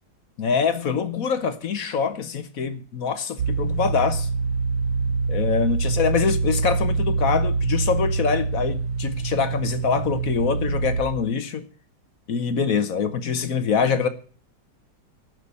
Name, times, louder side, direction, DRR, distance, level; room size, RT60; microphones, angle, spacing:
voice 1, 0.4-4.3 5.3-11.6 12.3-14.1, left 6 dB, 50° left, 1.3 m, -24 dB
sound 1, 3.4-11.0, right 4 dB, 65° right, 1.5 m, -25 dB
14.0 x 6.2 x 8.3 m
omnidirectional pair, 2.0 m